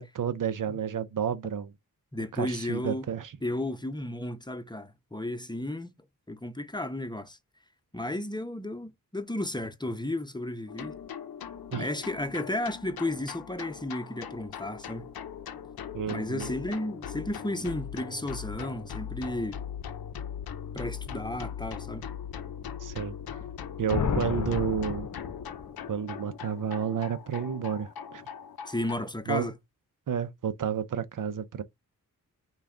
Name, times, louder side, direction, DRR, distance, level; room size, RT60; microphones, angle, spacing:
voice 1, 0.0-1.7 2.3-3.3 11.7-11.9 15.9-16.5 22.8-23.1 23.8-25.1 25.9-28.2 29.3-29.5 30.1-31.6, right 8 dB, 60° right, 0.7 m, -31 dB
voice 2, 2.1-3.1 3.4-5.9 6.3-7.4 7.9-10.9 11.8-15.1 16.1-19.6 20.7-22.1 28.7-29.5, left 1 dB, 10° left, 0.8 m, -33 dB
sound 1, 10.7-28.9, left 8 dB, 85° left, 0.7 m, -40 dB
sound 2, 23.9-25.9, left 6 dB, 55° left, 0.8 m, -31 dB
5.5 x 2.4 x 3.8 m
cardioid pair, 60°, 36 cm